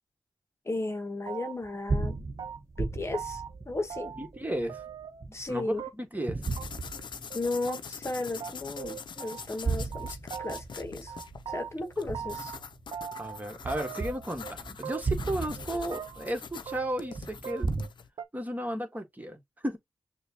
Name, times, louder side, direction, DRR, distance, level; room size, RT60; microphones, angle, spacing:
voice 1, 0.6-2.2 2.8-4.1 5.3-5.8 7.3-11.2 11.5-12.5, left 2 dB, 35° left, 1.1 m, -35 dB
sound 1, 1.3-1.8 2.0-2.8 3.1-3.5 3.9-4.4 4.7-5.2 5.8-6.2 6.6-6.7 7.0-7.1 7.3-7.4 7.7-7.8 8.1-8.2 8.4-9.6 9.9-10.8 11.1-12.6 12.9-13.4 13.7-14.5 14.8-15.3 15.6-16.3 16.7-17.2 17.4-17.9 18.2-18.3, right 8 dB, 75° right, 0.7 m, -40 dB
sound 2, 1.6-5.7 6.3-7.6 8.1-8.2 9.4-13.0 13.6-17.9, right 3 dB, 35° right, 1.0 m, -35 dB
voice 2, 4.2-4.8 5.5-6.4 13.2-17.7 18.3-19.8, right 1 dB, 20° right, 1.6 m, -34 dB
sound 3, 6.4-18.1, left 6 dB, 70° left, 0.6 m, -44 dB
6.3 x 2.4 x 2.8 m
supercardioid pair, 40°, 8 cm